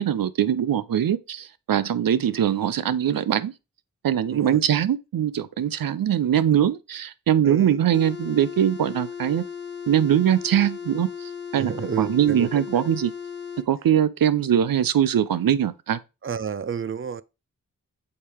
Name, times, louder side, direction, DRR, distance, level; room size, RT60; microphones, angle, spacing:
voice 1, 0.0-3.5 4.0-9.4 9.9-13.1 13.7-16.0, right 10 dB, 80° right, 0.6 m, -22 dB
voice 2, 4.3-4.6 7.4-7.8 11.6-12.5 12.7-12.9 16.2-17.2, right 7 dB, 40° right, 0.5 m, -31 dB
sound 1, 7.9-13.7, left 7 dB, 30° left, 1.3 m, -36 dB
6.6 x 4.3 x 3.3 m
cardioid pair, 45°, 34 cm